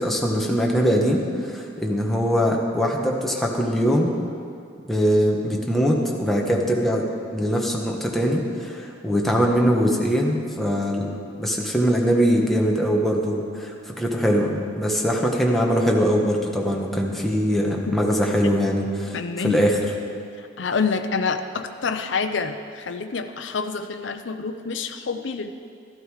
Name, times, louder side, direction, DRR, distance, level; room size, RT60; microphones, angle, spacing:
voice 1, 0.0-4.1 4.9-7.1 7.3-11.1 11.4-19.8, equal, ahead, -1 dB, 1.3 m, -22 dB
voice 2, 19.1-19.6 20.6-25.5, left 5 dB, 70° left, 7 dB, 0.6 m, -27 dB
13.5 x 12.0 x 4.9 m, 2.5 s
head